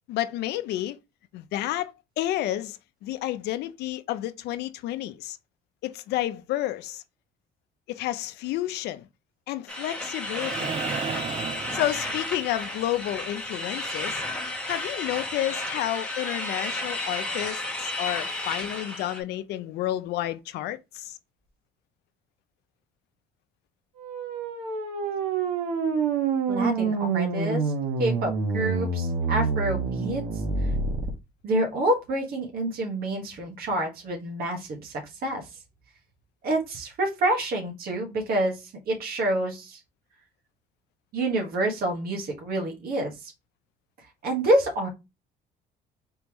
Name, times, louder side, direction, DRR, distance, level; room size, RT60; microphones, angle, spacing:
voice 1, 0.1-1.0 1.3-5.4 5.8-7.0 7.9-9.1 9.5-10.8 11.4-14.2 14.7-21.2, left 14 dB, 80° left, 0.6 m, -30 dB
sound 1, 9.7-19.2, left 1 dB, 5° left, 1.2 m, -33 dB
sound 2, 10.3-12.6 14.5-14.6, right 7 dB, 35° right, 0.5 m, -33 dB
sound 3, 24.0-31.1, right 4 dB, 90° right, 1.4 m, -27 dB
voice 2, 26.5-27.7 28.0-30.2 31.4-34.9 35.2-35.4 36.4-39.8 41.1-43.3 44.2-44.9, right 1 dB, 65° right, 1.6 m, -27 dB
4.3 x 3.6 x 3.0 m
cardioid pair, 110°, 17 cm